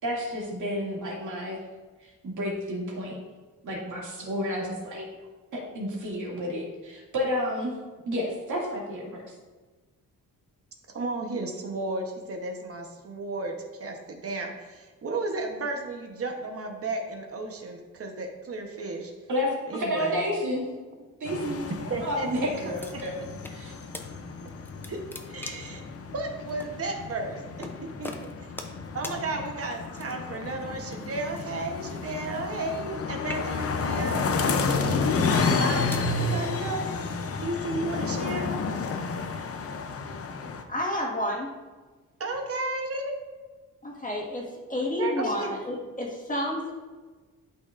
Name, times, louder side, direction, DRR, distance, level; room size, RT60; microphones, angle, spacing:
voice 1, 0.0-1.6 2.0-3.2 3.6-5.1 5.5-7.7 8.1-9.2 19.3-20.7 21.2-21.7 22.0-23.7, equal, 65° right, -3 dB, 2.4 m, -31 dB
voice 2, 10.9-13.5 13.8-19.1 19.7-20.2 21.9-22.5 24.9-25.0 25.3-25.8 26.1-28.1 28.4-28.5 28.9-34.2 35.6-36.9 37.4-38.6 42.2-43.1 45.0-45.5, right 2 dB, 45° right, 3 dB, 1.1 m, -33 dB
sound 1, 21.2-40.6, left 4 dB, 45° left, 0.7 m, -31 dB
sound 2, 22.8-23.6 23.9-24.1 24.5-25.8 26.6-26.7 27.6-27.8 28.0-28.8 29.0-29.2 29.9-30.4 31.3-33.0 33.2-33.8 34.5-34.7 35.4-36.1, left 1 dB, 5° left, 0.6 m, -41 dB
voice 3, 40.7-41.5 43.8-44.4 44.7-46.7, left 1 dB, 25° left, -3 dB, 1.8 m, -30 dB
12.0 x 5.5 x 2.6 m, 1.3 s
wide cardioid pair, 140°, 33 cm